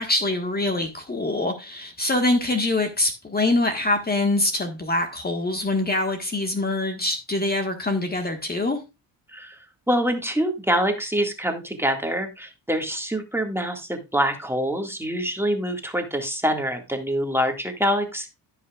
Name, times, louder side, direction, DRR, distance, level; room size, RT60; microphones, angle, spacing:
voice 1, 0.0-8.8, left 2 dB, 25° left, 1.5 m, -24 dB
voice 2, 9.3-18.3, equal, 5° right, 1.9 m, -25 dB
16.0 x 5.7 x 2.4 m
cardioid pair, 75°, 38 cm